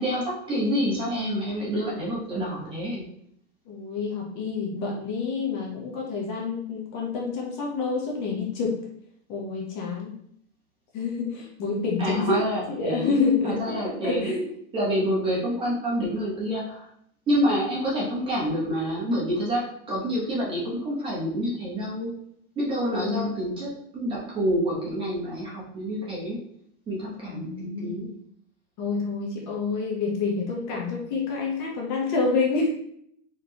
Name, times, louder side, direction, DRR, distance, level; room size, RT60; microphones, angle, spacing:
voice 1, 0.0-3.0 12.0-13.2 13.4-14.3 14.7-16.9 17.3-19.6 19.9-22.1 22.6-26.4 26.9-28.1, equal, 15° right, -6 dB, 1.1 m, -27 dB
voice 2, 3.7-8.8 9.3-10.1 10.9-12.4 12.7-14.4 22.9-23.3 27.3-28.1 28.8-32.7, left 4 dB, 40° left, -2 dB, 0.9 m, -28 dB
4.1 x 3.2 x 2.9 m, 0.69 s
supercardioid pair, 175°, 35 cm